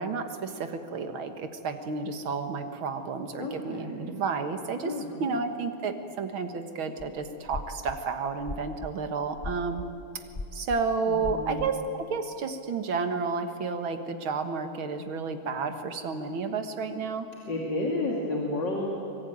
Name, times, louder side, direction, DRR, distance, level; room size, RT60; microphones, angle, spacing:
voice 1, 0.0-4.9 5.2-9.8 10.5-17.3, right 4 dB, 75° right, 7 dB, 2.4 m, -31 dB
voice 2, 3.4-4.1 4.8-5.3 11.1-11.7 17.5-18.9, left 2 dB, 60° left, -2 dB, 3.2 m, -32 dB
sound 1, 7.0-7.1 7.5-8.0 8.4-11.9, left 2 dB, 35° left, 0.6 m, -39 dB
24.0 x 23.5 x 9.5 m, 2.7 s
omnidirectional pair, 2.3 m